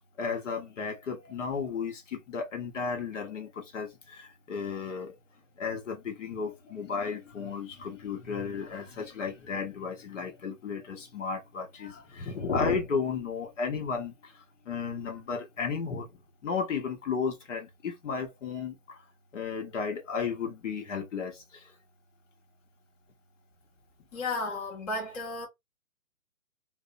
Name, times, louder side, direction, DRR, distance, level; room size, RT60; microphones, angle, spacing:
voice 1, 0.0-5.2 5.6-16.1 16.4-19.0 19.3-21.7, left 5 dB, 60° left, 0.7 m, -34 dB
voice 2, 24.1-25.5, left 2 dB, 25° left, 0.7 m, -33 dB
2.6 x 2.0 x 2.4 m
hypercardioid pair, 140°, 42 cm